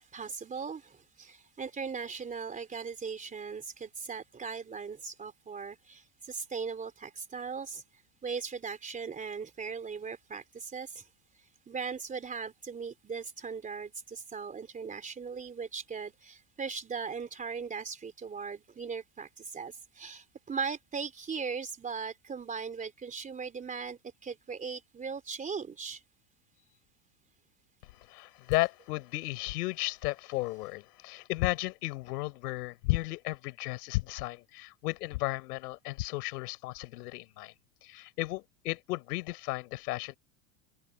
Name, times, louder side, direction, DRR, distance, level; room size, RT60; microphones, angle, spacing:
voice 1, 0.0-11.1 11.3-26.0 26.6-26.8, right 5 dB, 15° right, 3.7 m, -39 dB
voice 2, 27.8-37.5 37.8-40.2, left 20 dB, 85° left, 5.7 m, -34 dB
open air
supercardioid pair, 155°, 46 cm